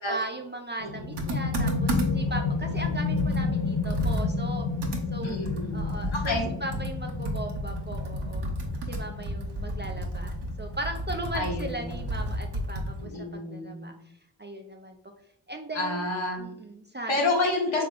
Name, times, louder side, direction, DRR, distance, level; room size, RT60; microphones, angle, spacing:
voice 1, 0.1-4.7 5.1-5.4 5.7-8.5 8.9-13.9 14.4-15.0 15.5-16.0 16.4-17.2, right 1 dB, 25° right, 3 dB, 0.4 m, -37 dB
sound 1, 0.8-12.2, left 4 dB, 50° left, 0.7 m, -31 dB
Computer keyboard, 1.2-2.3 2.8-2.9 3.2-13.0, right 1 dB, 55° right, 0.9 m, -32 dB
voice 2, 5.2-6.5 11.3-12.0 13.0-13.9 15.7-16.5 17.1-17.8, left 2 dB, 65° left, -1 dB, 1.2 m, -29 dB
3.4 x 3.3 x 2.4 m, 0.75 s
cardioid pair, 40°, 50 cm